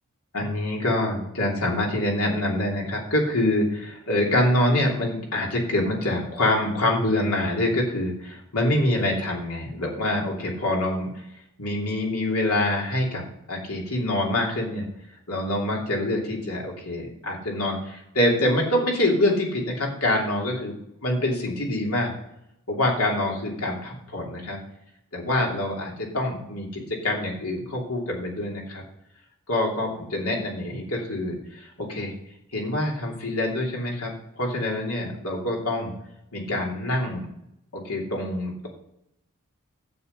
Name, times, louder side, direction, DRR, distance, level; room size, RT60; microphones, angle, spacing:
voice 1, 0.3-11.1 11.6-14.8 15.3-20.7 21.0-22.1 22.7-24.6 25.1-28.8 29.5-32.1 32.5-35.9 36.3-37.3 37.7-38.7, left 1 dB, 75° left, -1 dB, 2.9 m, -25 dB
9.5 x 7.9 x 5.4 m, 0.80 s
head